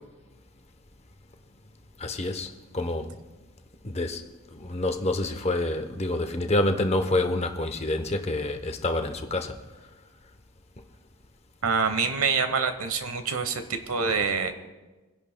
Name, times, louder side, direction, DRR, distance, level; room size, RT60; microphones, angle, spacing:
voice 1, 2.0-3.2 3.8-4.2 4.6-9.6, left 2 dB, 30° left, 0.8 m, -27 dB
voice 2, 11.6-14.5, right 5 dB, 75° right, 1.1 m, -26 dB
27.0 x 11.0 x 2.2 m
head